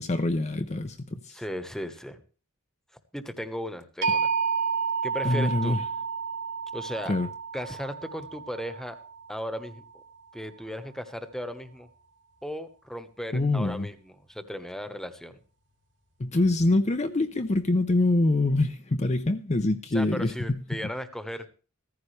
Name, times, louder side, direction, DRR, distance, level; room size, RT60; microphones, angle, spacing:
voice 1, 0.0-1.4 5.2-5.8 7.1-7.3 13.3-13.9 16.2-20.9, left 2 dB, 30° left, 0.7 m, -25 dB
voice 2, 1.3-2.2 3.1-4.3 5.0-5.8 6.7-7.1 7.5-9.0 9.3-10.0 10.3-11.9 12.4-15.4 19.9-21.5, equal, ahead, 1.2 m, -36 dB
sound 1, 4.0-10.0, right 5 dB, 60° right, 2.4 m, -31 dB
15.5 x 14.5 x 3.3 m
head